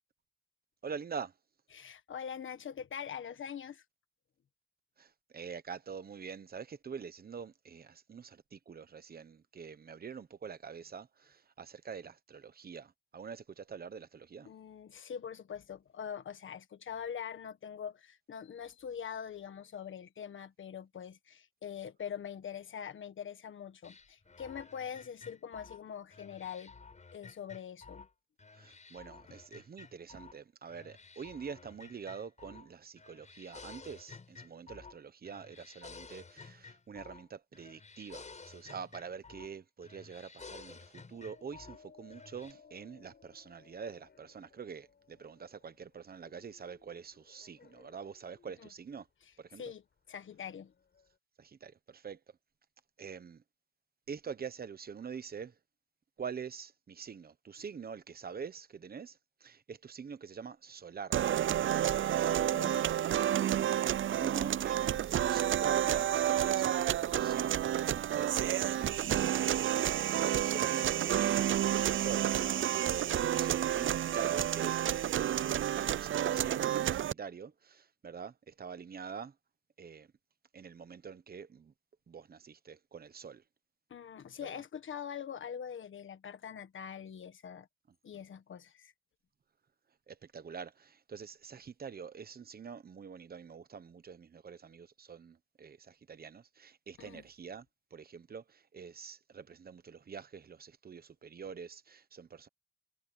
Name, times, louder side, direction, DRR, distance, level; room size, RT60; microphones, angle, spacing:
voice 1, 0.8-1.3 5.0-14.5 28.5-49.1 49.4-49.6 51.4-52.2 53.0-53.4 54.1-55.6 56.2-61.2 61.8-62.2 63.5-63.6 64.2-66.1 66.4-79.3 79.8-80.1 80.5-81.7 82.1-83.4 84.4-84.6 88.1-88.2 90.1-97.7 97.9-102.5, right 6 dB, 50° right, 1.1 m, -46 dB
voice 2, 1.7-3.8 14.4-26.7 27.1-28.1 48.6-48.7 49.6-49.8 50.1-50.7 62.4-62.9 83.9-87.7 88.0-88.9 97.0-97.2, left 8 dB, 85° left, 1.4 m, -43 dB
sound 1, 23.8-28.1 28.4-30.4 30.7-32.7 33.0-35.0 35.2-37.3 37.5-39.5 39.8-41.8 42.1-42.5, left 4 dB, 35° left, 6.9 m, -53 dB
sound 2, 41.1-51.2, left 5 dB, 60° left, 7.1 m, -62 dB
sound 3, 61.1-77.1, right 11 dB, 85° right, 0.5 m, -30 dB
wide cardioid pair, 165°, 20 cm